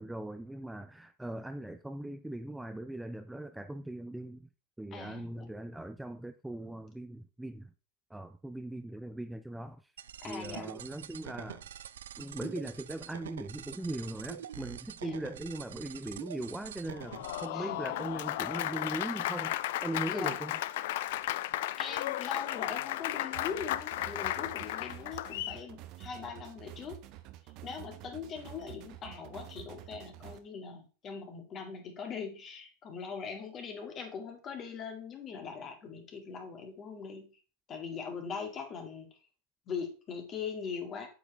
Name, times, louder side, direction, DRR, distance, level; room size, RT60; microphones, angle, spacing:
voice 1, 0.0-4.5 4.8-7.7 8.1-9.9 10.2-11.7 12.2-19.6 19.8-20.6, right 1 dB, 5° right, 0.4 m, -40 dB
voice 2, 4.9-5.5 10.2-10.7 15.0-15.2 17.5-17.8 20.1-20.4 21.0-21.3 21.8-27.0 27.6-37.3 37.7-39.1 39.7-41.1, left 6 dB, 35° left, 1.9 m, -41 dB
sound 1, 10.0-17.5, right 10 dB, 85° right, 0.3 m, -45 dB
Applause, 16.9-25.6, left 14 dB, 70° left, 0.3 m, -34 dB
sound 2, 23.3-30.4, right 15 dB, 50° right, 0.8 m, -49 dB
8.1 x 5.0 x 3.3 m
hypercardioid pair, 105°, 0 cm